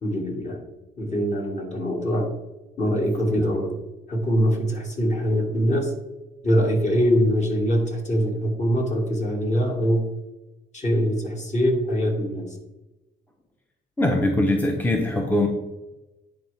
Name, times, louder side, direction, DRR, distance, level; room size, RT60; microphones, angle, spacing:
voice 1, 0.0-0.6 1.0-2.3 2.8-3.7 4.1-5.9 6.4-10.0 10.7-12.5, equal, 35° left, 0 dB, 2.0 m, -23 dB
voice 2, 14.0-15.5, left 1 dB, 10° left, 2 dB, 0.8 m, -21 dB
10.0 x 4.0 x 3.4 m, 1.0 s
cardioid pair, 90°, 20 cm